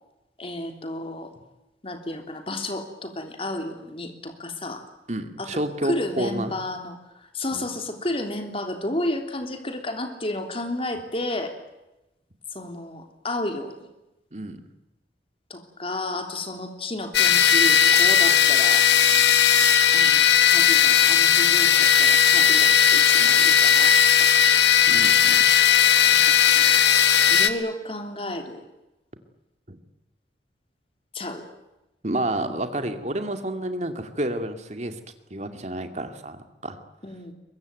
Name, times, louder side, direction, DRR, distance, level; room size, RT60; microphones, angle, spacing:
voice 1, 0.4-1.3 1.8-4.8 5.4-7.0 7.3-11.5 12.5-13.7 15.5-18.9 19.9-24.3 26.1-26.8 27.3-28.7 31.1-31.4 37.0-37.3, left 1 dB, 30° left, 5 dB, 3.3 m, -32 dB
voice 2, 5.1-6.5 7.5-7.7 14.3-14.6 24.9-25.4 29.7-29.8 32.0-35.0 35.3-36.8, right 1 dB, 40° right, 7 dB, 2.4 m, -30 dB
sound 1, 17.1-27.5, left 9 dB, 75° left, 1.9 m, -17 dB
23.0 x 22.0 x 9.4 m, 0.95 s
head